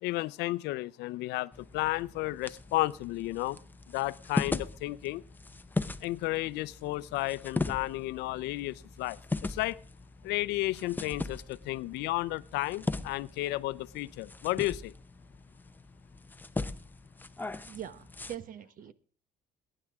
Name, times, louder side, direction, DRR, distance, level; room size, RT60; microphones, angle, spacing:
voice 1, 0.0-3.6 3.9-5.2 6.0-9.8 10.2-14.9, left 18 dB, 90° left, 0.6 m, -33 dB
sound 1, 1.5-18.4, left 3 dB, 10° left, 0.7 m, -39 dB
voice 2, 17.7-18.9, right 10 dB, 55° right, 1.1 m, -42 dB
22.0 x 10.0 x 3.6 m
cardioid pair, 110°, 17 cm